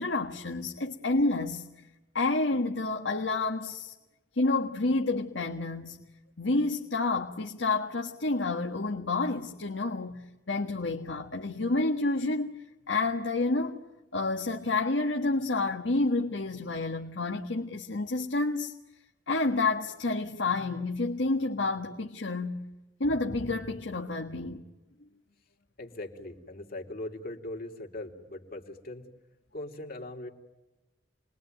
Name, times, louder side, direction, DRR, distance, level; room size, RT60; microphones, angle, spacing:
voice 1, 0.0-1.6 2.1-3.9 4.3-6.0 6.4-13.8 14.1-18.7 19.3-22.7 23.0-24.6, left 3 dB, 80° left, 1.5 m, -29 dB
voice 2, 25.8-29.0 29.5-30.3, left 1 dB, 55° left, 3.0 m, -40 dB
29.0 x 21.5 x 9.3 m
head